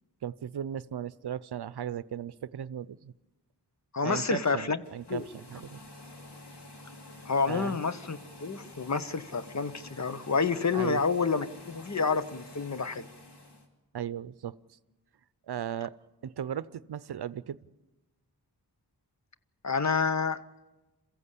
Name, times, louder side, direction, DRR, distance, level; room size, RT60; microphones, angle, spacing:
voice 1, 0.2-3.1 4.0-5.8 7.5-7.8 10.7-11.0 13.9-14.5 15.5-15.9 16.2-17.6, right 9 dB, 75° right, 17 dB, 0.6 m, -36 dB
voice 2, 3.9-4.8 5.1-5.2 7.2-13.1 19.6-20.4, left 5 dB, 45° left, 12 dB, 0.9 m, -29 dB
sound 1, 4.8-13.7, left 2 dB, 85° left, 2.9 m, -49 dB
27.5 x 15.0 x 8.3 m, 1.1 s
wide cardioid pair, 105°, 40 cm